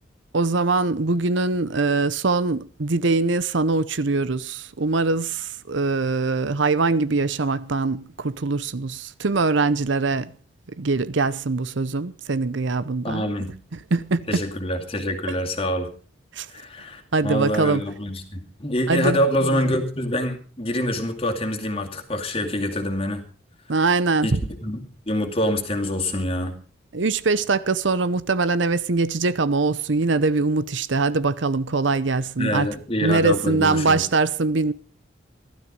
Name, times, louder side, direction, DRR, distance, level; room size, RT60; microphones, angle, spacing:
voice 1, 0.3-10.3 10.8-13.3 13.7-14.4 15.3-15.4 16.3-16.5 17.1-17.9 18.9-19.6 23.7-24.4 26.9-32.7 33.0-34.7, right 3 dB, 70° right, 0.7 m, -22 dB
voice 2, 13.0-13.5 14.3-15.9 16.5-23.2 24.2-24.3 24.6-26.5 32.4-34.0, left 1 dB, 30° left, 2.4 m, -26 dB
15.5 x 12.5 x 5.3 m
head